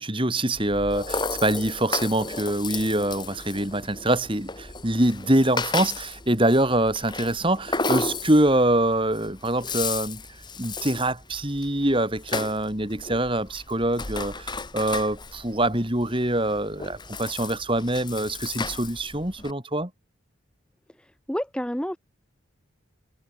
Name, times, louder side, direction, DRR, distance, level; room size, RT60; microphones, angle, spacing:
voice 1, 0.0-10.2 10.6-19.9, right 1 dB, 25° right, 3.4 m, -24 dB
Rattle (instrument), 0.5-19.5, left 3 dB, 20° left, 3.7 m, -34 dB
voice 2, 21.0-22.0, equal, 5° left, 1.0 m, -30 dB
head